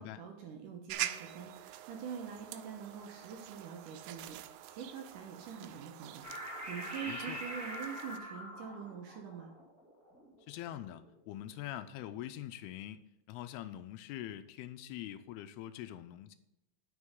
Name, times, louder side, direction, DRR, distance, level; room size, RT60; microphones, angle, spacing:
voice 1, 0.0-9.5, right 7 dB, 70° right, 2 dB, 2.2 m, -45 dB
sound 1, 0.9-8.2, right 13 dB, 90° right, 2.7 m, -45 dB
sound 2, 6.2-11.1, equal, 5° right, 1.7 m, -44 dB
voice 2, 7.1-7.4 10.5-16.4, left 12 dB, 85° left, 11 dB, 2.4 m, -44 dB
9.5 x 6.1 x 3.7 m, 0.93 s
omnidirectional pair, 4.6 m